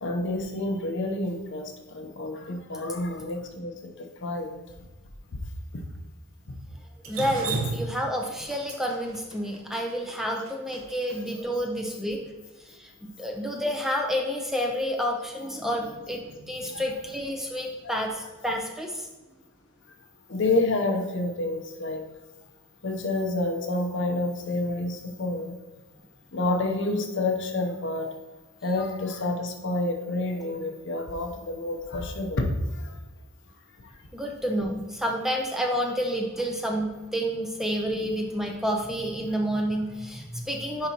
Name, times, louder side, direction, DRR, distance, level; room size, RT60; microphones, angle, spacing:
voice 1, 0.0-4.6 11.2-11.3 16.6-16.8 20.3-22.1 22.8-25.6 26.3-28.1 28.6-32.9 33.8-33.9, left 2 dB, 55° left, 4 dB, 0.8 m, -29 dB
Drip, 7.0-11.2, right 3 dB, 70° right, 1.0 m, -33 dB
voice 2, 7.1-12.2 12.8-19.1 34.1-40.9, equal, ahead, 1 dB, 0.5 m, -29 dB
10.5 x 4.0 x 2.9 m, 1.2 s
head